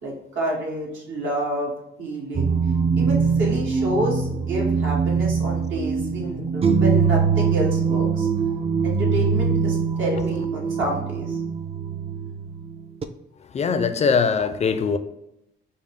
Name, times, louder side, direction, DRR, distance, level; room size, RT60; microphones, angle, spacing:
voice 1, 0.0-1.7 2.0-2.5 2.9-8.3 8.8-11.4, right 1 dB, 75° right, -3 dB, 1.5 m, -28 dB
sound 1, 2.3-13.0, right 5 dB, 30° right, 0.4 m, -23 dB
voice 2, 13.5-15.0, left 5 dB, 35° left, 11 dB, 0.4 m, -21 dB
5.3 x 2.0 x 3.6 m, 0.83 s
cardioid pair, 90°, 20 cm